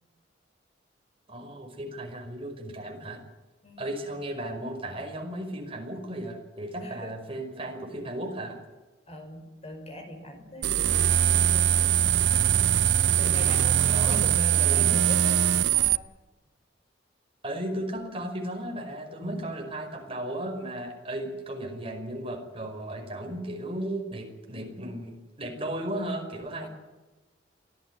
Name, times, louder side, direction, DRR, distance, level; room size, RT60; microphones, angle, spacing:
voice 1, 1.3-3.2 3.8-8.6 13.4-14.2 14.5-15.0 17.4-26.7, right 1 dB, 30° right, 3 dB, 5.3 m, -35 dB
voice 2, 6.8-7.2 9.1-11.9 13.2-16.1 19.2-19.6 26.6-26.7, equal, 35° left, 6 dB, 4.9 m, -42 dB
sound 1, 10.6-16.0, right 9 dB, 75° right, 0.7 m, -22 dB
24.0 x 17.0 x 9.6 m, 1.1 s
head